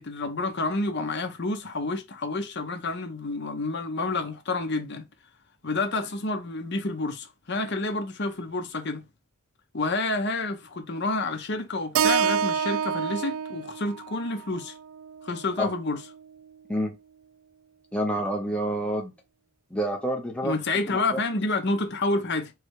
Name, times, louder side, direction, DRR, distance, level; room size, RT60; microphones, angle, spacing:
voice 1, 0.0-5.1 5.6-9.1 9.7-14.7 15.2-16.0 20.4-22.5, left 2 dB, 55° left, 0.9 m, -29 dB
Keyboard (musical), 11.9-16.2, right 7 dB, 75° right, 0.3 m, -28 dB
voice 2, 17.9-19.1 19.7-20.6 20.9-21.2, right 1 dB, 5° left, 0.8 m, -28 dB
4.7 x 2.2 x 4.7 m
head